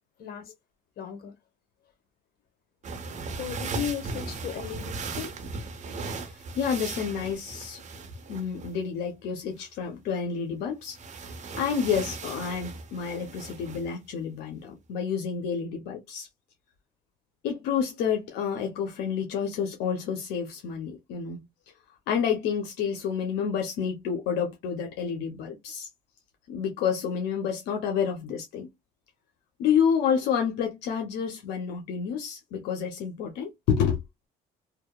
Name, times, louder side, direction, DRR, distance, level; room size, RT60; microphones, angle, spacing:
voice 1, 0.2-0.5 1.0-1.3 3.4-5.3, left 9 dB, 65° left, 1.0 m, -36 dB
sound 1, 2.8-8.8 10.9-13.9, right 4 dB, 45° right, 0.7 m, -37 dB
voice 2, 6.3-7.8 8.3-11.0 11.6-16.3 17.4-21.5 22.1-25.9 26.5-28.7 29.6-34.0, left 7 dB, 90° left, 0.6 m, -29 dB
2.8 x 2.0 x 2.2 m
cardioid pair, 110°, 17 cm